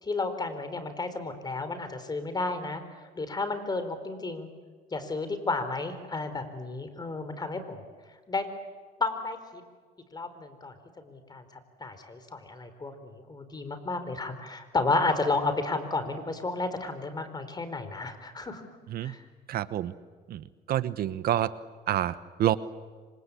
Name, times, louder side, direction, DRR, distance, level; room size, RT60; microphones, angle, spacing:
voice 1, 0.0-2.8 3.2-4.5 4.9-7.8 8.3-8.5 9.0-9.6 10.1-11.4 11.8-18.6 19.0-19.2, left 3 dB, 25° left, 10 dB, 3.9 m, -32 dB
voice 2, 19.5-19.9 20.3-21.5 21.9-22.6, right 12 dB, 65° right, 15 dB, 1.1 m, -28 dB
27.5 x 25.5 x 8.4 m, 1.5 s
cardioid pair, 110°, 17 cm